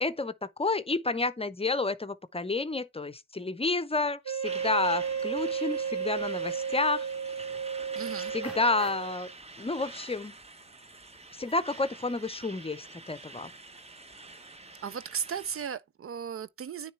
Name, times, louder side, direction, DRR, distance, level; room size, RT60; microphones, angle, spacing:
voice 1, 0.0-7.1 8.3-9.3 9.6-10.3 11.3-13.5, left 3 dB, 20° left, 0.7 m, -30 dB
Wind instrument woodwind instrument, 4.2-9.3, right 6 dB, 70° right, 2.0 m, -33 dB
Truck, 4.4-15.7, right 2 dB, 20° right, 0.9 m, -47 dB
sound 1, 7.4-7.9 8.4-9.3 9.7-10.1 10.4-10.5 10.9-12.3 12.6-12.9, right 1 dB, ahead, 2.3 m, -51 dB
voice 2, 8.0-8.3 14.8-16.9, right 7 dB, 50° right, 0.5 m, -36 dB
9.4 x 3.3 x 4.4 m
supercardioid pair, 55°, 30 cm